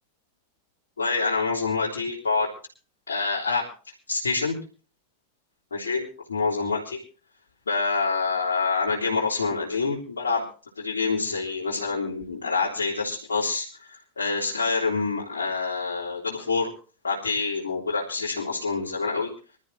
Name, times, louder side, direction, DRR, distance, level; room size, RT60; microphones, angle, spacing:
voice 1, 1.0-2.5 3.1-3.6 4.1-4.5 5.7-7.0 7.7-10.4 10.8-13.7 14.2-16.7 17.0-19.3, left 4 dB, 70° left, -6 dB, 3.5 m, -26 dB
26.0 x 13.0 x 2.8 m, 0.36 s
figure-of-eight pair, 90°, 0 cm